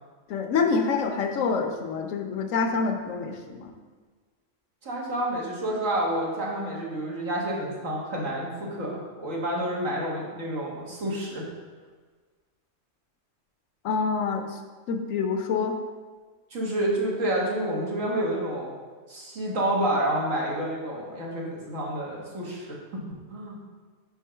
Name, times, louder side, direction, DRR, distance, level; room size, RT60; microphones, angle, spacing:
voice 1, 0.3-3.7 13.8-14.6 14.9-15.8, left 5 dB, 85° left, 5 dB, 1.1 m, -26 dB
voice 2, 4.8-11.4 16.5-18.7 19.1-22.8 23.3-23.6, right 1 dB, 80° right, -4 dB, 1.8 m, -29 dB
4.9 x 4.5 x 5.6 m, 1.4 s
omnidirectional pair, 1.3 m